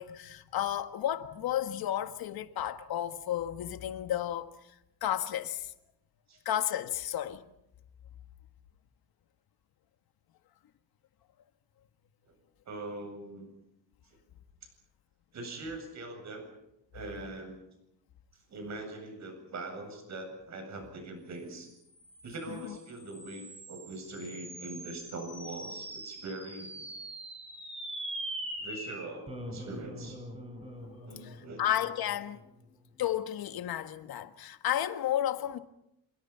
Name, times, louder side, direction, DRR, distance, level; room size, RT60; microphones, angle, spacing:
voice 1, 0.0-4.6 5.0-5.7 6.5-7.4 22.5-22.7 31.2-32.4 33.0-35.6, left 11 dB, 65° left, 1.7 m, -32 dB
voice 2, 12.6-13.5 15.3-16.4 16.9-17.6 18.5-21.7 22.2-26.9 28.6-30.2 31.0-31.6, right 2 dB, 45° right, 7.9 m, -42 dB
sound 1, 21.8-32.5, right 1 dB, 15° right, 5.0 m, -43 dB
28.5 x 27.0 x 5.8 m
cardioid pair, 170°, 39 cm